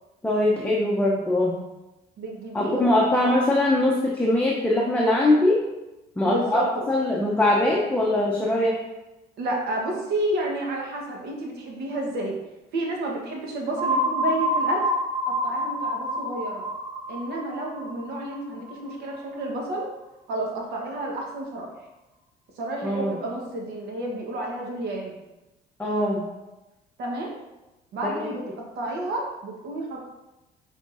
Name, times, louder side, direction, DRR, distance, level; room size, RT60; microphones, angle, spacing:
voice 1, 0.2-1.5 2.5-5.6 6.2-8.8 22.8-23.1 25.8-26.2 28.0-28.3, left 1 dB, 10° left, -3 dB, 0.6 m, -22 dB
voice 2, 2.2-3.2 6.2-6.9 9.4-12.4 12.7-14.9 15.3-16.6 17.1-19.9 20.3-21.7 22.6-25.2 27.0-27.4 27.9-30.1, right 1 dB, 75° right, -1 dB, 1.1 m, -30 dB
sound 1, 13.8-19.4, equal, 30° right, 1.4 m, -28 dB
5.6 x 3.6 x 2.5 m, 1.0 s
cardioid pair, 110°, 17 cm